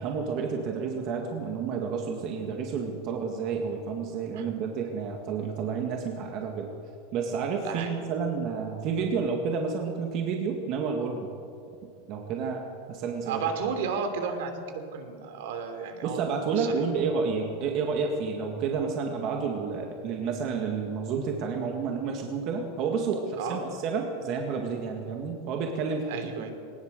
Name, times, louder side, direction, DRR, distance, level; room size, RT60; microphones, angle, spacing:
voice 1, 0.0-6.7 7.1-11.3 12.1-12.6 12.9-13.5 16.0-26.5, right 5 dB, 35° right, 2 dB, 1.9 m, -30 dB
voice 2, 7.6-8.0 13.2-16.7 23.4-23.7 26.1-26.5, right 6 dB, 65° right, 6 dB, 3.1 m, -33 dB
20.5 x 19.0 x 6.6 m, 2.4 s
supercardioid pair, 170°, 0 cm